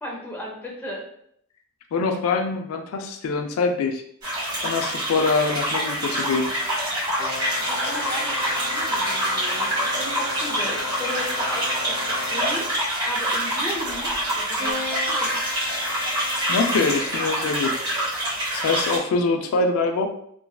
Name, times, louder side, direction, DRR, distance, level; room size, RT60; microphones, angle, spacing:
voice 1, 0.0-1.0 7.6-12.7 13.0-15.3, left 1 dB, 10° left, -3 dB, 0.5 m, -35 dB
voice 2, 1.9-4.0 4.6-6.5 16.5-17.7 18.5-20.1, left 4 dB, 85° left, 5 dB, 0.3 m, -24 dB
sound 1, 4.2-19.0, right 1 dB, 20° right, 1.3 m, -26 dB
sound 2, 7.2-12.9 14.6-17.0, left 1 dB, 50° left, 0.7 m, -32 dB
3.0 x 2.5 x 2.3 m, 0.69 s
head